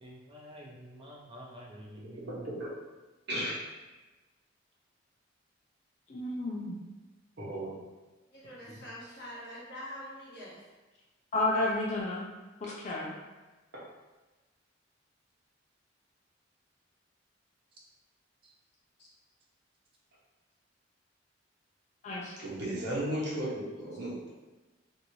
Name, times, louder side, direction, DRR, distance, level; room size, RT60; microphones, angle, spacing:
voice 1, 0.0-2.4, equal, 30° right, -2 dB, 0.4 m, -48 dB
voice 2, 6.1-6.8 11.3-12.3 12.6-13.1 22.0-22.3, left 2 dB, 40° left, -3 dB, 0.6 m, -31 dB
voice 3, 7.4-7.8 22.4-24.3, right 1 dB, 60° right, -6 dB, 1.0 m, -34 dB
voice 4, 8.3-10.6 19.0-19.1, equal, 60° left, -7 dB, 1.2 m, -45 dB
3.0 x 2.6 x 2.7 m, 1.2 s
head